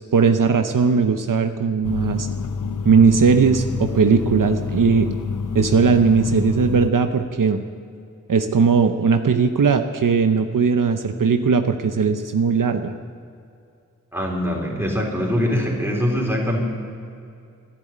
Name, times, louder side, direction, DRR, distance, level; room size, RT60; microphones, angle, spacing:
voice 1, 0.1-2.3 2.8-5.1 5.5-7.6 8.3-12.9, right 5 dB, 80° right, 7 dB, 0.8 m, -18 dB
sound 1, 1.8-6.9, left 5 dB, 75° left, 0.7 m, -27 dB
voice 2, 14.1-16.6, equal, 10° right, -2 dB, 3.6 m, -23 dB
12.0 x 10.5 x 9.2 m, 2.5 s
wide cardioid pair, 70°, 32 cm